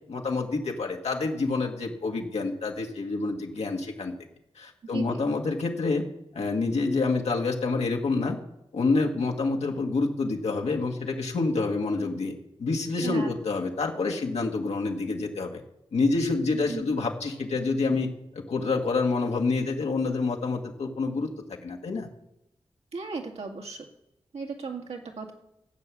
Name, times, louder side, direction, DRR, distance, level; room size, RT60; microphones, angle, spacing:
voice 1, 0.1-4.1 4.6-6.0 6.3-8.4 8.7-12.3 12.6-15.6 15.9-18.1 18.5-21.3 21.6-22.1, left 3 dB, 90° left, 1 dB, 1.7 m, -27 dB
voice 2, 13.0-13.3 16.7-16.8 22.9-23.9 24.3-25.3, right 4 dB, 80° right, 2 dB, 2.1 m, -35 dB
15.0 x 6.1 x 8.4 m, 0.86 s
wide cardioid pair, 75°, 11 cm